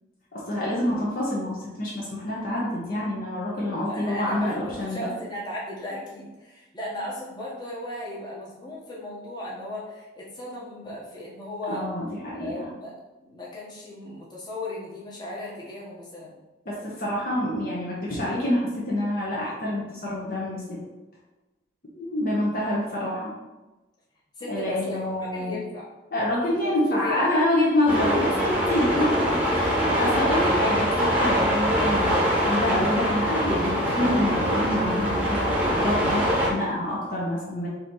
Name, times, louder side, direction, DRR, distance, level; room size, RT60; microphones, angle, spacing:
voice 1, 0.3-5.1 11.7-12.5 16.6-20.8 21.9-23.3 24.5-25.6 26.1-37.7, left 1 dB, 50° left, -6 dB, 1.1 m, -27 dB
voice 2, 3.9-11.9 12.4-16.3 22.5-22.8 24.4-25.0 25.3-25.9 26.6-27.3 29.0-29.1 29.6-30.0 30.4-30.5, left 1 dB, 25° left, -6 dB, 1.2 m, -36 dB
sound 1, 27.9-36.5, equal, 10° right, 1.0 m, -23 dB
4.1 x 3.0 x 4.1 m, 1.1 s
head